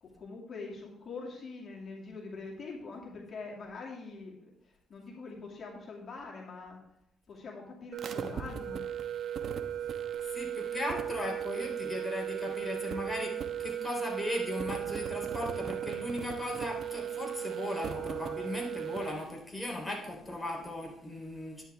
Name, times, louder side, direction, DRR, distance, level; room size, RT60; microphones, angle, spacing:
voice 1, 0.0-6.8 7.3-8.8, left 4 dB, 50° left, -2 dB, 2.5 m, -44 dB
sound 1, 7.9-19.2, right 9 dB, 60° right, 1.1 m, -36 dB
voice 2, 10.3-21.6, left 1 dB, 10° left, -1 dB, 3.6 m, -37 dB
12.5 x 9.7 x 3.5 m, 0.83 s
cardioid pair, 90°, 0 cm